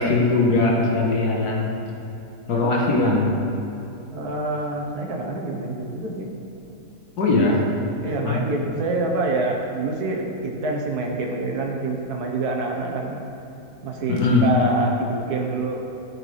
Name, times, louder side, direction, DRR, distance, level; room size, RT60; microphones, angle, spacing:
voice 1, 0.0-1.7 2.5-3.3 7.2-7.6 8.1-8.4 14.1-14.5, left 2 dB, 85° left, -2 dB, 1.7 m, -20 dB
voice 2, 4.1-6.3 8.0-13.2 13.8-15.8, right 2 dB, 80° right, 0 dB, 1.5 m, -26 dB
14.0 x 4.7 x 3.2 m, 3.0 s
omnidirectional pair, 1.6 m